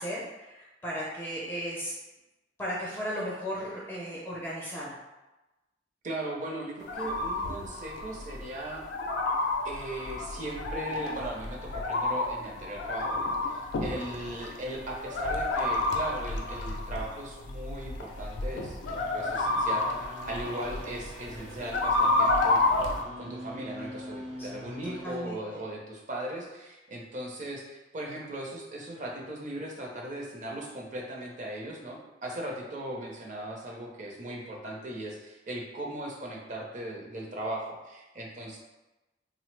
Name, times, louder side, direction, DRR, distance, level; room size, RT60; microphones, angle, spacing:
voice 1, 0.0-1.9 2.6-5.0 24.8-25.4, equal, 15° left, -6 dB, 0.4 m, -35 dB
voice 2, 6.0-8.8 9.6-38.6, right 1 dB, 45° right, -1 dB, 0.6 m, -38 dB
sound 1, 6.8-23.0, left 2 dB, 85° left, 0.4 m, -30 dB
sound 2, 18.8-25.2, equal, 80° right, 0.7 m, -44 dB
3.1 x 2.0 x 3.2 m, 1.1 s
head